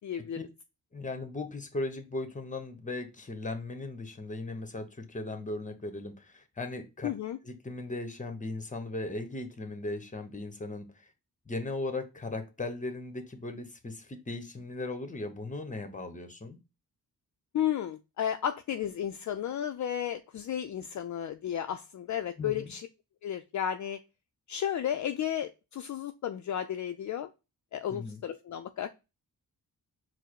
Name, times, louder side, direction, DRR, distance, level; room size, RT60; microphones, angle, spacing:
voice 1, 0.0-0.4 7.0-7.4 17.5-22.9 23.2-24.0 24.5-27.3 27.7-28.9, left 10 dB, 55° left, 7 dB, 0.4 m, -33 dB
voice 2, 0.9-7.1 7.4-11.1 11.5-16.6 22.4-22.7 27.9-28.2, left 2 dB, 20° left, 8 dB, 0.9 m, -37 dB
4.5 x 2.1 x 4.5 m, 0.27 s
cardioid pair, 80°, 36 cm